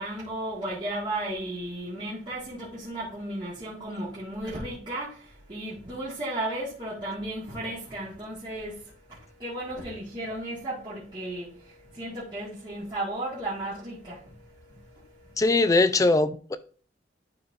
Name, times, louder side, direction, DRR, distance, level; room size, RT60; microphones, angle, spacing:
voice 1, 0.0-15.4, right 1 dB, 25° right, 1.7 m, -35 dB
voice 2, 15.4-16.6, left 2 dB, 20° left, 0.4 m, -21 dB
11.5 x 4.3 x 2.6 m
head